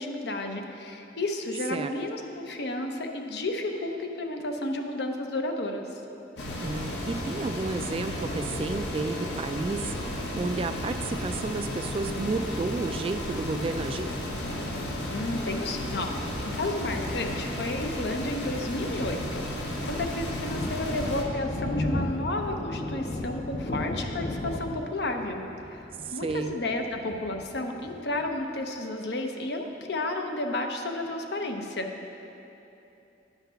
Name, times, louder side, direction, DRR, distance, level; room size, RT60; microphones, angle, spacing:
voice 1, 0.0-5.9 15.1-16.2 16.5-25.4 25.7-25.8 26.1-31.9, left 2 dB, 70° left, 4 dB, 0.8 m, -32 dB
sound 1, 6.4-21.2, left 1 dB, 90° left, 1.3 m, -33 dB
voice 2, 6.6-14.1 26.1-26.6, right 3 dB, 30° right, 9 dB, 0.3 m, -32 dB
Thunder, 19.2-28.3, left 1 dB, 35° left, 0.5 m, -34 dB
10.0 x 5.8 x 5.7 m, 2.9 s
head